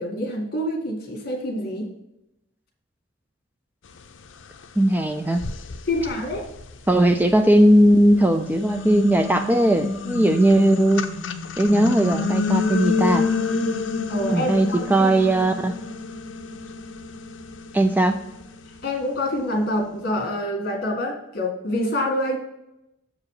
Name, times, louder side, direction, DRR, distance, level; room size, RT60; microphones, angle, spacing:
voice 1, 0.0-1.9 5.9-6.4 14.1-15.1 18.8-22.4, left 1 dB, 50° left, 1 dB, 1.8 m, -26 dB
sound 1, 4.6-4.7 5.3-7.6 8.2-19.5, left 4 dB, 65° left, 0.6 m, -28 dB
voice 2, 4.8-5.4 6.9-11.1 11.6-13.3 14.3-15.8 17.7-18.2, right 1 dB, 10° right, 6 dB, 0.3 m, -18 dB
7.0 x 4.8 x 4.8 m, 0.88 s
head